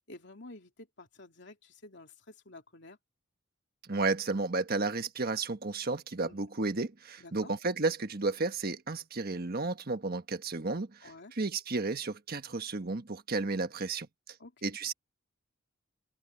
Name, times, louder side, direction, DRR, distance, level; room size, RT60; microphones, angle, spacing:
voice 1, 0.1-3.0 6.2-6.4 7.2-7.5 11.0-11.3 14.4-14.8, left 2 dB, 60° left, 3.1 m, -51 dB
voice 2, 3.9-14.1 14.6-14.9, right 3 dB, 50° right, 1.4 m, -32 dB
head